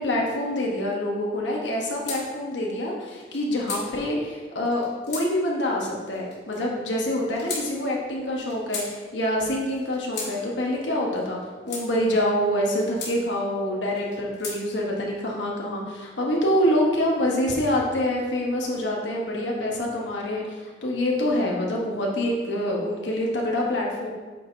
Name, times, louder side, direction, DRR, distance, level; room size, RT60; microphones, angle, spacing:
voice 1, 0.0-11.4 11.7-24.1, left 1 dB, 80° left, -2 dB, 1.0 m, -26 dB
sound 1, 2.0-2.2 3.1-3.9 4.6-5.3 6.1-6.6 7.4-7.7 8.4-8.9 9.8-10.3 11.2-11.9 12.6-13.2 14.0-14.6, left 4 dB, 60° left, 1.8 m, -35 dB
8.3 x 4.6 x 2.6 m, 1.4 s
head